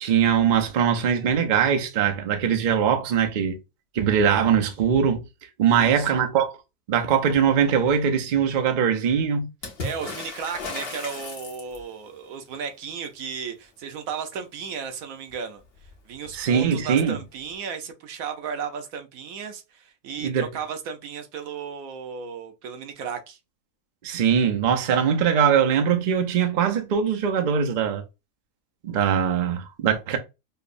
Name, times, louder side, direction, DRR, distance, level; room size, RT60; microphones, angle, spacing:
voice 1, 0.0-3.6 3.9-5.2 5.6-6.6 6.9-9.5 16.3-17.2 20.2-20.5 24.0-28.0 28.8-30.2, right 7 dB, 50° right, 0.6 m, -21 dB
voice 2, 5.6-6.1 9.8-15.6 16.1-23.4, right 6 dB, 90° right, 1.1 m, -34 dB
Water / Splash splatter, 9.6-12.0 15.3-15.4 15.6-16.4 17.5-17.6, left 3 dB, 50° left, 1.0 m, -35 dB
5.3 x 2.0 x 2.5 m
omnidirectional pair, 1.4 m